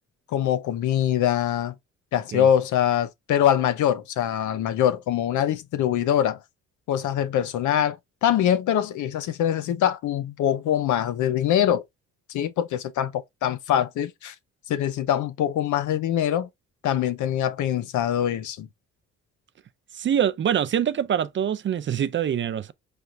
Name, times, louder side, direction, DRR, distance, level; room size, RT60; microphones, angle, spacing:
voice 1, 0.3-1.7 2.1-6.4 6.9-11.8 12.3-14.3 14.7-16.5 16.8-18.7, left 10 dB, 75° left, 0.7 m, -23 dB
voice 2, 20.0-22.7, right 9 dB, 40° right, 0.4 m, -24 dB
4.5 x 3.4 x 2.5 m
cardioid pair, 90°, 30 cm